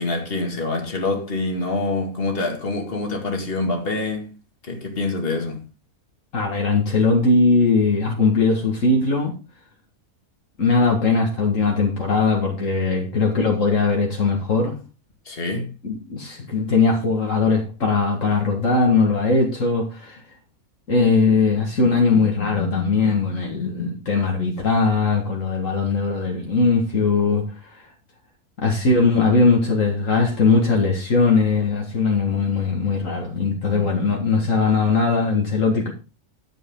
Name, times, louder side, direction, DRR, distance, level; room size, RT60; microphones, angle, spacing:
voice 1, 0.0-4.3 4.7-5.6 15.3-15.7, left 2 dB, 40° left, 2.3 m, -25 dB
voice 2, 6.3-9.4 10.6-14.8 15.8-20.2 20.9-27.8 28.6-35.9, left 4 dB, 60° left, 2.0 m, -20 dB
11.5 x 7.7 x 3.7 m
omnidirectional pair, 1.5 m